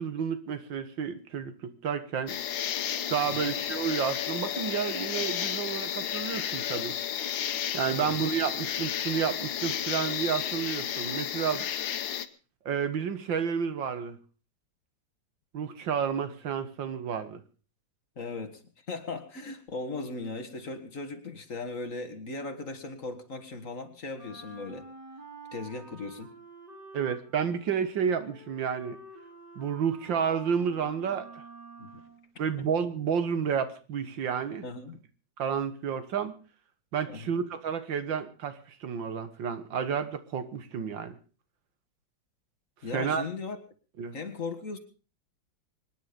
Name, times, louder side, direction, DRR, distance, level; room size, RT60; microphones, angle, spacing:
voice 1, 0.0-2.4 3.1-7.0 7.7-11.7 12.7-14.2 15.5-17.4 26.9-29.0 29.6-31.4 32.4-34.6 35.4-36.4 36.9-41.2 42.9-43.2 44.0-44.2, right 7 dB, 80° right, 11 dB, 2.1 m, -31 dB
sound 1, 2.3-12.3, left 9 dB, 85° left, 1.7 m, -32 dB
voice 2, 18.2-18.6 18.9-24.9 25.5-26.4 31.8-31.9 34.6-35.0 37.1-37.4 42.8-43.6 44.1-44.8, left 3 dB, 45° left, 7 dB, 2.1 m, -38 dB
Wind instrument woodwind instrument, 24.1-32.3, right 2 dB, 65° right, 4.7 m, -48 dB
24.5 x 10.5 x 5.2 m, 0.36 s
omnidirectional pair, 2.0 m